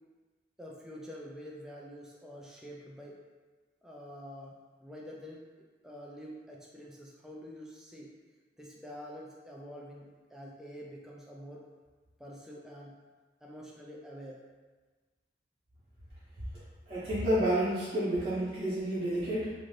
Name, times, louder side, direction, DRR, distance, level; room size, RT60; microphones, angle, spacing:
voice 1, 0.6-3.2 3.8-5.4 5.8-8.1 8.6-11.6 12.2-13.0 13.4-14.4, equal, 5° right, -3 dB, 0.3 m, -47 dB
voice 2, 16.9-19.5, right 1 dB, 30° right, -13 dB, 0.8 m, -30 dB
2.6 x 2.5 x 3.1 m, 1.3 s
head